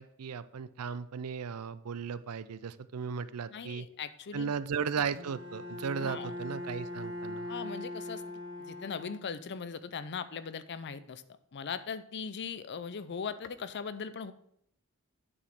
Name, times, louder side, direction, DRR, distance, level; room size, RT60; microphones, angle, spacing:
voice 1, 0.0-3.9 4.3-7.5, right 6 dB, 85° right, 15 dB, 0.5 m, -36 dB
voice 2, 3.5-4.5 6.0-6.3 7.4-8.2 8.6-11.2 11.5-14.3, left 6 dB, 50° left, 13 dB, 0.5 m, -39 dB
Bowed string instrument, 5.1-9.7, left 1 dB, 65° right, 1.4 m, -41 dB
8.6 x 5.0 x 6.0 m, 0.70 s
head